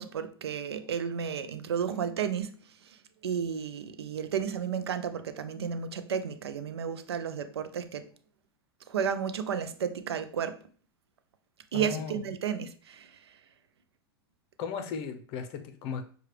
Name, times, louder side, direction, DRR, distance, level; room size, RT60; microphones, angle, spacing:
voice 1, 0.0-2.5 3.2-8.1 8.9-10.6 11.7-13.1, right 7 dB, 90° right, 0.5 m, -32 dB
voice 2, 11.7-12.2 14.6-16.1, left 6 dB, 45° left, 0.7 m, -36 dB
5.8 x 2.3 x 3.2 m
hypercardioid pair, 110°, 13 cm